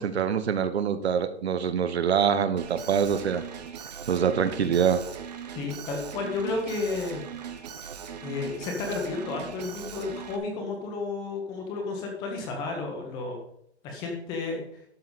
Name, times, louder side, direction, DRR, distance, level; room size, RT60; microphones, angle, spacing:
voice 1, 0.0-3.4 4.1-5.0, right 7 dB, 70° right, 12 dB, 1.1 m, -25 dB
Alarm, 2.6-10.4, right 7 dB, 40° right, 1.0 m, -40 dB
voice 2, 5.5-7.2 8.2-13.4 13.8-14.6, left 3 dB, 10° left, 2 dB, 1.1 m, -32 dB
12.0 x 6.8 x 4.1 m, 0.71 s
hypercardioid pair, 175°, 33 cm